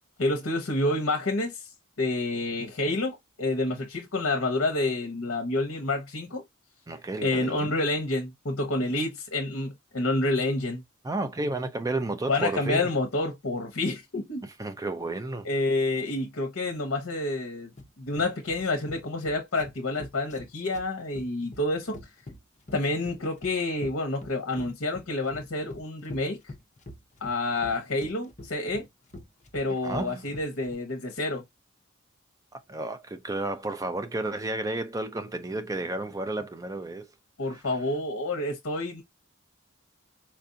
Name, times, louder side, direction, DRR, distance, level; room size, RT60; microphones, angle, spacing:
voice 1, 0.2-1.7 2.0-6.4 7.2-10.8 12.3-14.4 15.4-17.7 18.0-22.0 22.7-26.4 27.2-28.9 29.5-31.4 37.4-39.0, left 2 dB, 65° left, 0.9 m, -28 dB
voice 2, 6.9-7.7 11.0-12.9 14.4-15.5 29.8-30.3 32.5-37.1 37.5-37.6, right 2 dB, 15° right, 0.4 m, -32 dB
sound 1, 17.8-30.7, left 1 dB, 35° left, 0.8 m, -45 dB
4.5 x 2.5 x 2.5 m
head